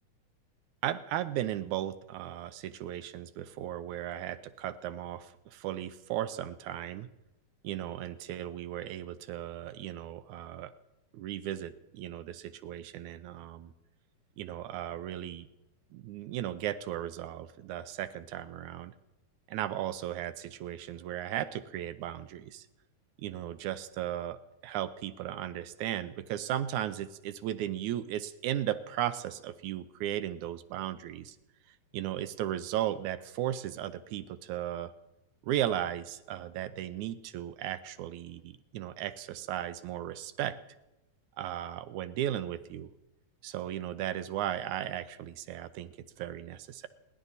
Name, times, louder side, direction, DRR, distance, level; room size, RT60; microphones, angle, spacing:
voice 1, 0.8-7.1 7.6-10.7 11.1-13.7 14.4-15.5 15.9-18.9 19.5-22.7 23.2-24.4 24.6-31.4 31.9-34.9 35.4-40.6 41.4-42.9 43.4-46.9, right 12 dB, 75° right, 13 dB, 2.0 m, -36 dB
29.5 x 11.0 x 4.1 m, 0.95 s
omnidirectional pair, 3.6 m